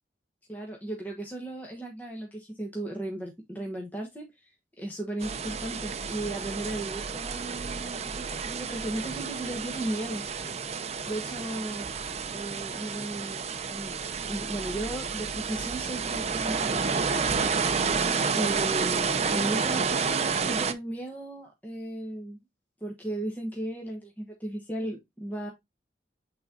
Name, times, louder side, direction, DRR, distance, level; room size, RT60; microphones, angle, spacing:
voice 1, 0.5-10.2 11.1-11.9 12.3-13.9 14.3-17.0 18.4-22.4 22.8-25.5, right 1 dB, 10° left, 1.2 m, -36 dB
sound 1, 5.2-20.7, right 5 dB, 35° right, 0.6 m, -30 dB
8.6 x 4.0 x 2.7 m
head